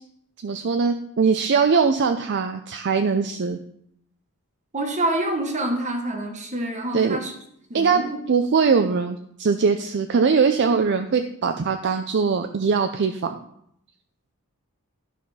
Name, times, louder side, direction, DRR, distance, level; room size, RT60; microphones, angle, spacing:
voice 1, 0.4-3.6 6.9-7.2 7.7-13.4, right 5 dB, 55° right, 7 dB, 0.5 m, -21 dB
voice 2, 4.7-7.4 7.7-8.2, right 1 dB, 35° right, 4 dB, 1.4 m, -27 dB
11.5 x 4.3 x 5.5 m, 0.72 s
head